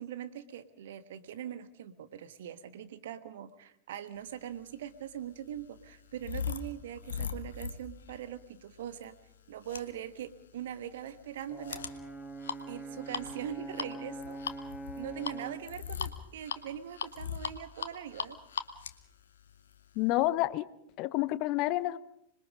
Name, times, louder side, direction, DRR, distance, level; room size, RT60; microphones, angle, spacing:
voice 1, 0.0-9.1 9.5-11.8 12.7-14.4 15.0-18.4, right 10 dB, 60° right, 12 dB, 1.3 m, -42 dB
sound 1, 4.6-20.3, left 7 dB, 65° left, 1.3 m, -41 dB
Brass instrument, 11.5-15.7, right 2 dB, ahead, 2.1 m, -43 dB
voice 2, 20.0-20.7 21.0-22.0, left 16 dB, 40° left, 18 dB, 0.7 m, -29 dB
26.0 x 21.0 x 5.3 m, 0.79 s
figure-of-eight pair, 90°, 0 cm